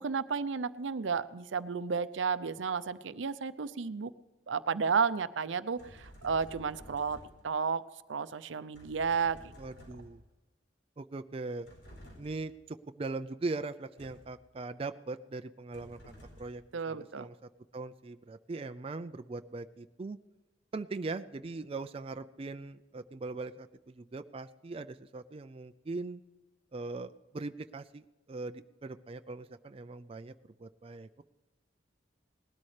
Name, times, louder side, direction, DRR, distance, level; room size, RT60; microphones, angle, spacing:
voice 1, 0.0-4.1 4.5-7.2 7.4-7.8 8.1-9.4 16.7-17.3, right 5 dB, 80° right, 14 dB, 0.6 m, -32 dB
sound 1, 5.8-7.5 8.7-10.3 11.6-12.6 14.0-14.4 15.7-16.7, equal, 80° left, 4.6 m, -53 dB
voice 2, 9.6-10.2 11.0-11.7 12.2-16.0 16.4-17.3 17.7-20.2 20.7-26.2 26.7-30.3 30.6-31.2, right 3 dB, 30° right, 9 dB, 0.4 m, -40 dB
19.5 x 12.5 x 3.3 m, 1.1 s
head